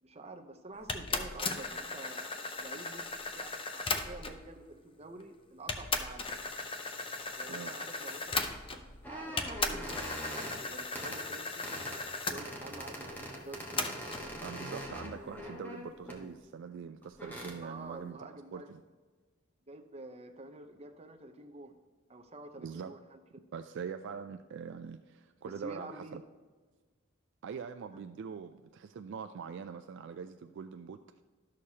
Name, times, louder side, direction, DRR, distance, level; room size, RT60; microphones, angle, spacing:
voice 1, 0.0-6.3 7.4-9.8 10.7-11.7 12.3-14.0 17.6-18.7 19.7-21.7 22.1-23.4 25.4-26.2 27.9-28.0, right 2 dB, 30° right, 5 dB, 0.7 m, -48 dB
sound 1, 0.9-4.5 5.2-5.3 5.7-9.0 9.4-12.4 13.8-14.3, left 3 dB, 25° left, 0.6 m, -36 dB
sound 2, 9.0-10.6 10.9-11.2 11.6-12.0 12.4-16.2 17.0-17.6, equal, 10° left, 1.2 m, -42 dB
voice 2, 14.4-18.8 22.6-23.0 23.5-26.2 27.4-31.0, right 6 dB, 60° right, 8 dB, 0.3 m, -43 dB
12.0 x 6.5 x 2.8 m, 1.4 s
head